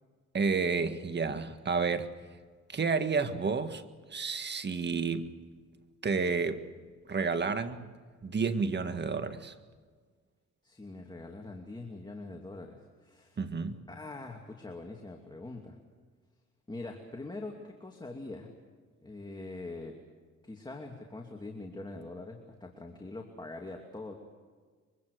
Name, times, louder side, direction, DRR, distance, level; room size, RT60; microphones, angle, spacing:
voice 1, 0.3-2.1 2.7-3.8 4.1-5.4 6.0-6.7 7.1-7.9 8.2-9.5 13.4-13.8, right 5 dB, 35° right, 1.9 m, -30 dB
voice 2, 10.6-13.4 13.9-15.8 16.7-18.5 19.0-20.0 20.4-24.1, left 2 dB, 15° left, 2.7 m, -43 dB
24.5 x 24.0 x 6.7 m
cardioid pair, 90°, 30 cm